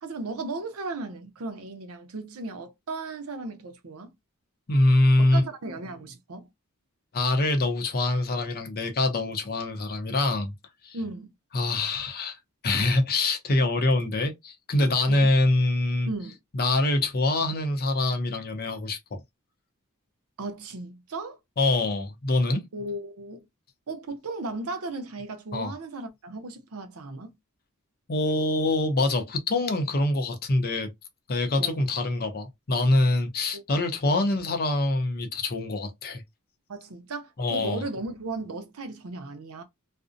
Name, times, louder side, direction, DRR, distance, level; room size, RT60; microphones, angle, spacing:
voice 1, 0.0-4.1 5.3-6.5 10.9-11.3 15.1-15.3 16.1-16.4 20.4-21.4 22.7-23.5 23.9-27.4 31.6-31.8 33.5-33.6 34.0-34.2 36.7-39.6, right 3 dB, 75° right, 0.6 m, -36 dB
voice 2, 4.7-5.4 7.1-10.5 10.8-11.0 11.5-12.4 12.6-16.1 16.5-19.2 21.6-22.7 25.5-25.7 28.1-30.9 31.3-36.2 37.4-37.8, left 2 dB, 45° left, 0.6 m, -24 dB
2.5 x 2.1 x 2.5 m
head